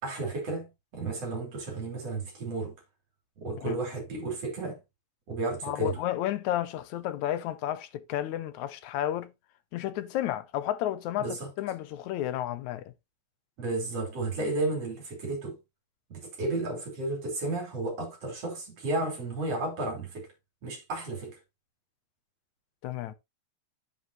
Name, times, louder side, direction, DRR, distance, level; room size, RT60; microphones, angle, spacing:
voice 1, 0.0-2.8 3.4-4.8 5.3-6.0 11.2-11.5 13.6-15.6 16.1-20.3 20.6-21.4, right 2 dB, 55° right, 5.3 m, -33 dB
voice 2, 5.6-9.3 9.7-12.9 22.8-23.1, left 12 dB, 80° left, 2.2 m, -32 dB
10.5 x 7.5 x 2.9 m
omnidirectional pair, 3.3 m